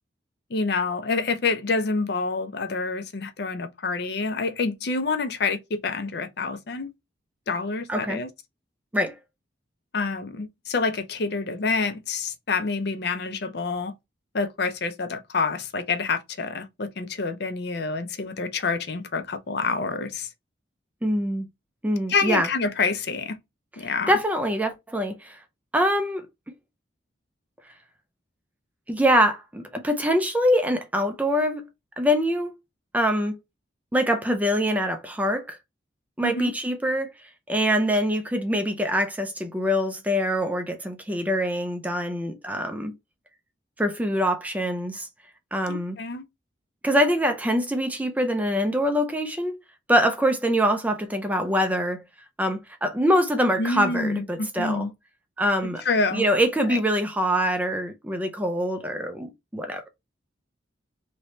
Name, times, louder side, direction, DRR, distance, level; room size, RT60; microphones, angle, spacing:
voice 1, 0.5-6.9 7.5-8.3 9.9-13.9 14.3-20.3 22.1-23.4 23.8-24.2 36.2-36.5 45.7-46.2 53.6-54.9 55.8-56.2 56.7-56.8, left 4 dB, 55° left, 0.5 m, -27 dB
voice 2, 7.9-8.2 8.9-9.2 21.0-21.5 21.8-22.5 23.8-25.4 25.7-26.3 28.9-31.6 32.0-32.5 32.9-33.4 33.9-35.6 36.2-37.1 37.5-42.9 43.8-45.1 45.5-46.0 46.8-49.6 49.9-52.0 52.4-54.9 55.4-55.8 56.1-59.9, equal, 10° right, 0.4 m, -24 dB
3.0 x 2.7 x 3.1 m
head